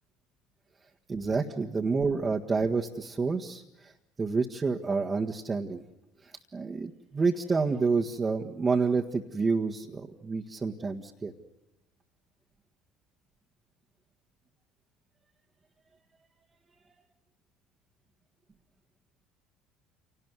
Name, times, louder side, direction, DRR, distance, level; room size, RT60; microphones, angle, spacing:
voice 1, 1.1-3.9 4.2-5.8 6.2-11.3, right 4 dB, 25° right, -1 dB, 1.7 m, -29 dB
28.0 x 19.0 x 9.8 m, 0.93 s
hypercardioid pair, 65°, 0 cm